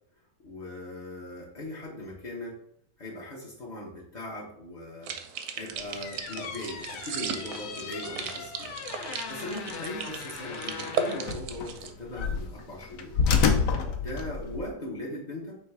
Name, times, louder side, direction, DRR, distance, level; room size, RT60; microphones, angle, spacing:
voice 1, 0.4-2.6 3.0-5.1 5.5-8.7 9.1-13.2 13.9-15.6, left 1 dB, 50° left, -4 dB, 0.5 m, -39 dB
sound 1, 5.0-11.9, right 6 dB, 70° right, 0.8 m, -36 dB
sound 2, 5.8-14.7, left 5 dB, 65° left, 0.8 m, -31 dB
3.3 x 3.1 x 4.5 m, 0.68 s
omnidirectional pair, 1.8 m